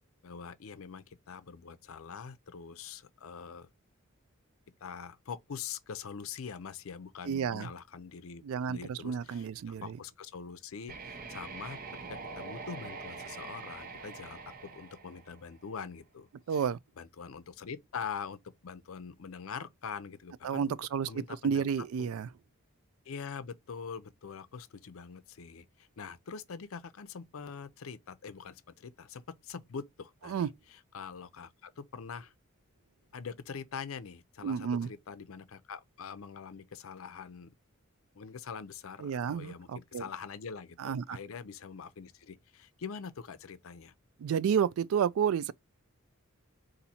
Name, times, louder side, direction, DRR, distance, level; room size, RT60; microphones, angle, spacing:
voice 1, 0.2-3.7 4.8-8.4 8.7-11.8 12.1-16.6 17.0-20.8 21.1-21.6 22.0-22.1 23.1-32.3 33.1-37.5 38.1-43.9, left 6 dB, 70° left, 0.5 m, -44 dB
voice 2, 7.2-7.7 8.4-10.0 16.5-16.8 20.4-22.3 30.3-30.5 34.4-34.9 39.0-40.1 40.8-41.2 44.2-45.5, right 7 dB, 75° right, 0.3 m, -31 dB
sound 1, 10.9-15.8, right 4 dB, 40° right, 0.7 m, -44 dB
4.1 x 2.6 x 4.2 m
head